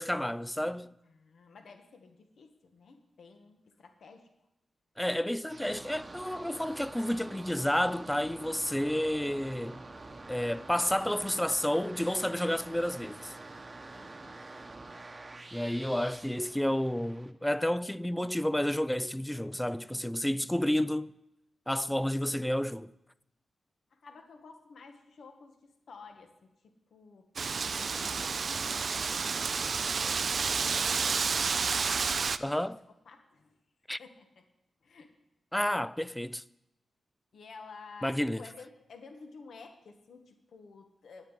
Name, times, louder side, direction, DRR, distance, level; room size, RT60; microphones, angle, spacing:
voice 1, 0.0-0.9 5.0-9.8 10.3-13.3 15.5-21.1 21.7-22.9 32.4-32.8 33.9-34.0 35.5-36.4 38.0-38.4, left 1 dB, 5° left, 0.4 m, -30 dB
voice 2, 1.0-4.3 13.9-14.3 23.9-27.3 27.8-30.2 30.5-32.6 33.0-33.6 34.0-34.4 34.8-35.2 37.3-41.2, left 4 dB, 70° left, 1.6 m, -52 dB
sound 1, 5.5-17.3, right 2 dB, 30° right, 1.0 m, -47 dB
Wind, 27.4-32.4, right 5 dB, 55° right, 0.5 m, -30 dB
10.0 x 8.8 x 9.2 m
wide cardioid pair, 105°, 0 cm